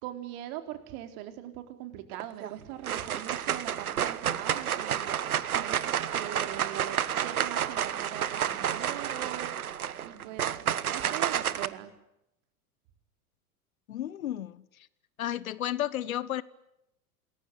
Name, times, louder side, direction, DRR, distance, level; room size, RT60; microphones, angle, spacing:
voice 1, 0.0-5.2 5.5-9.6 10.0-11.9, right 13 dB, 50° right, 4.0 m, -41 dB
sound 1, 2.1-2.5 2.8-11.7, right 9 dB, 75° right, 1.3 m, -30 dB
voice 2, 13.9-14.9 15.2-16.4, left 12 dB, 65° left, 1.2 m, -33 dB
28.0 x 21.0 x 9.9 m
figure-of-eight pair, 85°, 44 cm